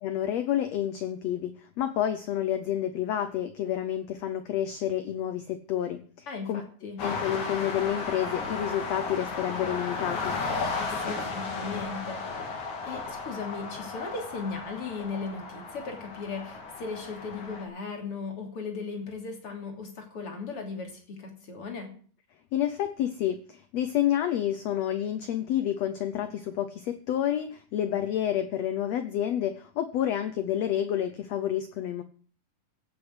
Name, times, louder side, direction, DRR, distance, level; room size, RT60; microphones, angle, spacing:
voice 1, 0.0-6.6 7.0-10.4 22.5-32.0, left 11 dB, 80° left, 11 dB, 1.5 m, -29 dB
voice 2, 6.3-7.0 10.8-21.9, left 4 dB, 40° left, 3 dB, 3.7 m, -37 dB
sound 1, 7.0-17.6, left 4 dB, 60° left, 4.0 m, -34 dB
16.0 x 7.3 x 8.0 m, 0.43 s
omnidirectional pair, 4.0 m